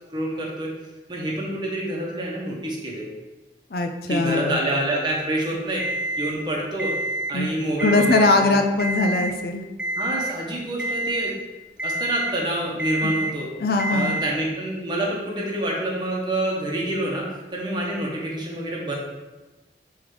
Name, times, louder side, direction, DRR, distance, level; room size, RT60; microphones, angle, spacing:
voice 1, 0.1-0.7 1.1-3.1 4.1-5.9 6.2-6.9 7.3-8.6 10.0-11.3 11.8-13.5 13.9-17.3 17.5-19.0, right 1 dB, 25° right, -3 dB, 1.1 m, -27 dB
voice 2, 3.7-4.6 7.3-7.5 7.8-9.6 13.0-13.1 13.6-14.2, left 2 dB, 55° left, 5 dB, 0.5 m, -21 dB
Alarm, 5.8-6.3 6.8-7.3 7.7-8.3 8.8-9.3 9.8-10.3 10.8-11.3 11.8-12.3 12.8-13.3 13.8-14.3, right 1 dB, 5° right, 0.4 m, -27 dB
6.3 x 3.5 x 4.9 m, 1.2 s
head